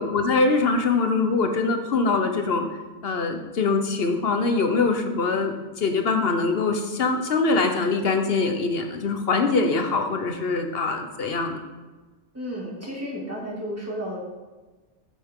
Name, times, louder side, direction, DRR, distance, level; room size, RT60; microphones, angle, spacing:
voice 1, 0.0-2.6 3.0-11.6, left 3 dB, 60° left, 5 dB, 1.1 m, -23 dB
voice 2, 12.3-14.2, equal, 15° right, -4 dB, 2.3 m, -32 dB
8.5 x 8.4 x 3.7 m, 1.2 s
omnidirectional pair, 1.2 m